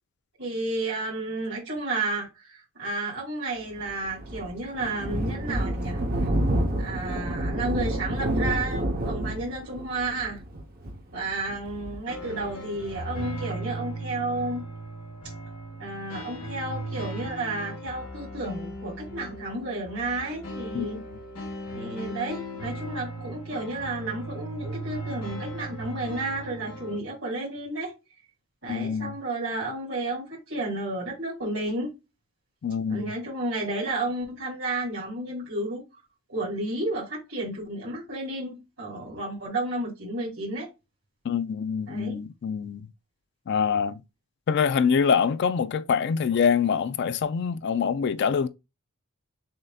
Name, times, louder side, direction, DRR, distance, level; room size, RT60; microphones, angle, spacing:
voice 1, 0.4-6.0 6.8-10.4 11.1-14.6 15.8-21.0 21.7-27.9 28.6-31.9 32.9-35.8 36.3-40.7 41.9-42.2, right 2 dB, 65° right, 2.3 m, -32 dB
Thunder, 3.7-12.9, right 1 dB, 40° right, 0.8 m, -29 dB
sound 1, 12.1-27.0, right 1 dB, 80° left, 1.6 m, -37 dB
voice 2, 28.7-29.1 32.6-33.1 41.2-42.9 43.5-44.0 44.5-48.5, left 6 dB, 50° left, 0.3 m, -25 dB
6.4 x 2.6 x 2.3 m
head